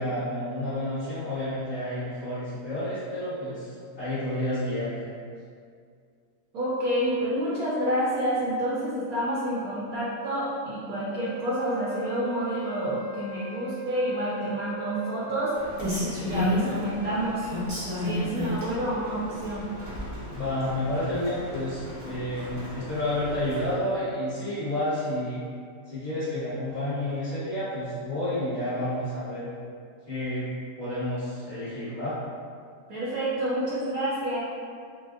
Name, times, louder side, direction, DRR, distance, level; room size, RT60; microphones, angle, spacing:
voice 1, 0.0-5.1 20.3-25.4 25.9-29.5 30.1-30.5 30.8-32.2, left 1 dB, 40° left, -15 dB, 1.8 m, -30 dB
voice 2, 6.5-15.6 16.1-17.5 18.0-19.7 32.9-34.4, right 1 dB, 70° right, -8 dB, 0.9 m, -28 dB
Wind instrument woodwind instrument, 11.1-15.5, right 5 dB, 70° left, 1.0 m, -39 dB
Rain, 15.5-23.7, left 1 dB, 35° right, 0.5 m, -33 dB
4.8 x 2.1 x 2.4 m, 2.2 s
omnidirectional pair, 1.9 m